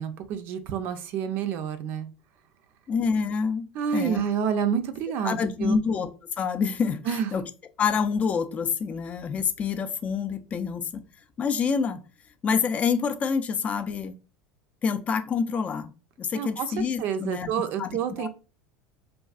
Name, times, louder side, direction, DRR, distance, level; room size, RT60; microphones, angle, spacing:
voice 1, 0.0-2.1 3.7-5.8 7.1-7.3 16.3-18.3, right 8 dB, 55° right, 10 dB, 0.4 m, -29 dB
voice 2, 2.9-3.7 3.9-4.2 5.2-6.1 6.4-7.4 7.8-11.0 11.4-12.0 12.4-14.2 14.8-15.9 16.2-17.5 17.8-17.9 18.2-18.3, left 6 dB, 35° left, 9 dB, 0.3 m, -27 dB
2.4 x 2.3 x 2.3 m, 0.33 s
hypercardioid pair, 90°, 4 cm